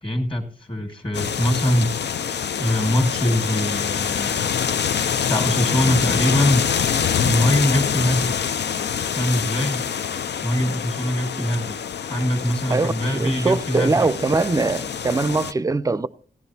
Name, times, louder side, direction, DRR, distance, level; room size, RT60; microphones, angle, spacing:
voice 1, 0.0-2.0 2.6-4.5 5.3-6.7 7.2-8.4 9.0-9.8 10.4-11.8 12.1-14.1, equal, 30° left, 1.7 m, -23 dB
sound 1, 1.1-15.5, left 7 dB, 80° left, 0.5 m, -25 dB
voice 2, 12.7-16.1, right 3 dB, 20° right, 0.4 m, -22 dB
17.0 x 11.0 x 2.7 m
wide cardioid pair, 135°, 18 cm